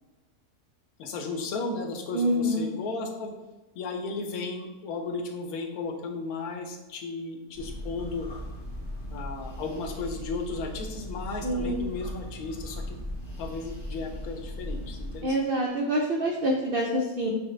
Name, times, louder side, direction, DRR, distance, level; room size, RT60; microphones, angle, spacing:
voice 1, 1.0-3.3 3.7-8.3 9.1-13.0 13.4-15.5, left 3 dB, 80° left, 4 dB, 1.1 m, -35 dB
voice 2, 2.1-2.7 11.4-11.9 15.2-17.3, right 1 dB, 80° right, -1 dB, 0.5 m, -26 dB
sound 1, 7.5-15.2, left 1 dB, 20° left, 0.7 m, -38 dB
6.1 x 2.1 x 3.1 m, 1.1 s
omnidirectional pair, 1.6 m